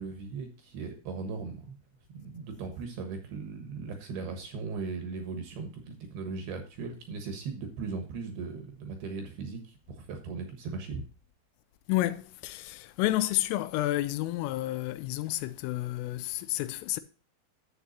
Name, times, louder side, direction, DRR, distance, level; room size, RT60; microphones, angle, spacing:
voice 1, 0.0-1.8 2.1-11.0, right 4 dB, 65° right, 2.8 m, -38 dB
voice 2, 11.9-17.0, left 16 dB, 85° left, 3.2 m, -30 dB
11.5 x 8.1 x 2.7 m
omnidirectional pair, 5.9 m